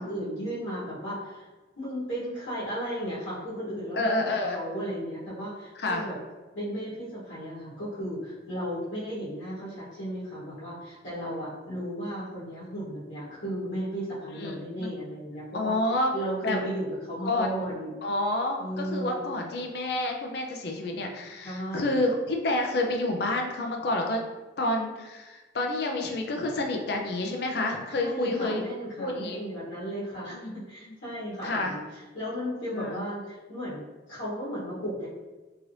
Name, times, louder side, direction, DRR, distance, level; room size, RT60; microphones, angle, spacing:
voice 1, 0.0-1.5 1.8-6.1 6.5-15.7 16.1-17.9 18.6-19.3 21.4-22.0 27.9-35.1, equal, 75° left, -10 dB, 1.0 m, -35 dB
voice 2, 3.9-4.6 5.8-6.0 14.3-14.9 15.5-16.1 16.4-16.6 17.3-17.5 18.0-24.2 24.6-28.6 29.0-29.4 30.3-30.5 30.9-31.0 31.4-31.7 32.7-33.0, left 2 dB, 55° left, 2 dB, 0.5 m, -29 dB
2.9 x 2.5 x 3.1 m, 1.2 s
head